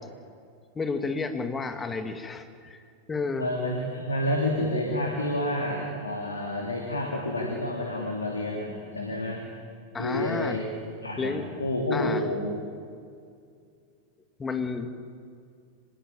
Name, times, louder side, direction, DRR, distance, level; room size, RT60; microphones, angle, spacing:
voice 1, 0.8-2.8 3.1-3.5 9.9-10.6 11.2-11.6 11.9-12.2 14.4-14.9, left 4 dB, 15° left, 7 dB, 2.2 m, -31 dB
voice 2, 3.4-9.4 10.0-10.6 11.0-12.6, left 1 dB, 80° left, 0 dB, 3.3 m, -29 dB
26.0 x 19.5 x 8.9 m, 2.3 s
figure-of-eight pair, 90°, 0 cm